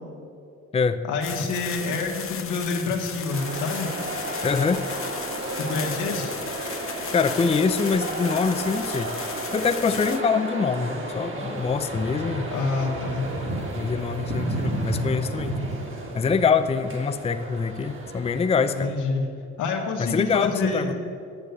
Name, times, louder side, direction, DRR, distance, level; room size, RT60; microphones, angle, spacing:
voice 1, 1.0-3.9 5.7-6.3 12.5-13.3 18.7-19.2 19.6-20.9, left 4 dB, 85° left, 1 dB, 1.7 m, -27 dB
sound 1, 1.2-10.2, left 7 dB, 45° left, 0.9 m, -36 dB
sound 2, 3.3-18.9, right 2 dB, 40° right, 2.2 m, -32 dB
voice 2, 4.4-4.8 7.1-9.1 9.5-12.5 13.8-15.5 16.1-18.9 20.0-20.9, left 5 dB, 20° left, 9 dB, 0.5 m, -24 dB
9.8 x 6.6 x 8.1 m, 2.5 s
cardioid pair, 90°, 30 cm